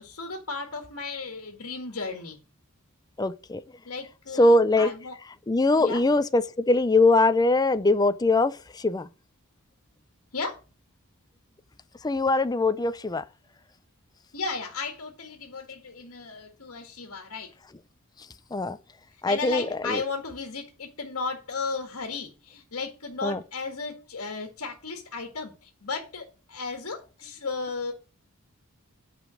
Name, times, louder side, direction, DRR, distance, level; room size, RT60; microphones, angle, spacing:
voice 1, 0.0-2.4 3.9-5.2 5.8-6.0 10.3-10.6 14.3-17.5 19.3-27.9, left 4 dB, 65° left, 1.9 m, -35 dB
voice 2, 3.2-3.6 4.4-4.9 5.5-9.1 12.0-13.2 18.5-18.8 19.2-20.0 23.2-23.4, left 2 dB, 20° left, 0.5 m, -22 dB
9.8 x 5.1 x 6.3 m
head